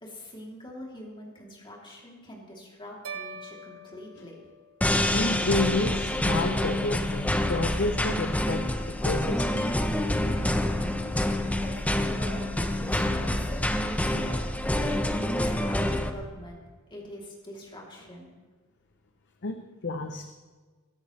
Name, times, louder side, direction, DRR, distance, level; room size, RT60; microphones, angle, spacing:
voice 1, 0.0-4.4 11.6-14.4 14.8-16.6 16.9-18.3, equal, 25° left, -2 dB, 3.2 m, -43 dB
sound 1, 3.0-5.3, right 4 dB, 85° right, 1.3 m, -43 dB
sound 2, 4.8-16.1, left 1 dB, 5° left, 0.8 m, -27 dB
voice 2, 5.1-8.7 9.0-9.7 19.4-20.3, left 3 dB, 55° left, 6 dB, 0.7 m, -30 dB
22.5 x 12.0 x 3.3 m, 1.4 s
head